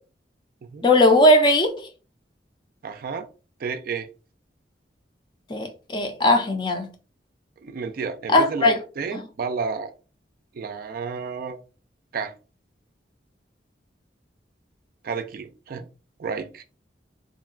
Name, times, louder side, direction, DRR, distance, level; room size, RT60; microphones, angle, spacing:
voice 1, 0.8-1.9 5.5-6.9 8.3-8.8 9.1-9.2, left 1 dB, 25° left, 0.5 m, -18 dB
voice 2, 2.8-3.3 3.6-4.1 7.6-9.9 10.5-11.6 12.1-12.3 15.0-15.9 16.2-16.6, right 5 dB, 55° right, 0.4 m, -31 dB
3.6 x 2.1 x 2.4 m
head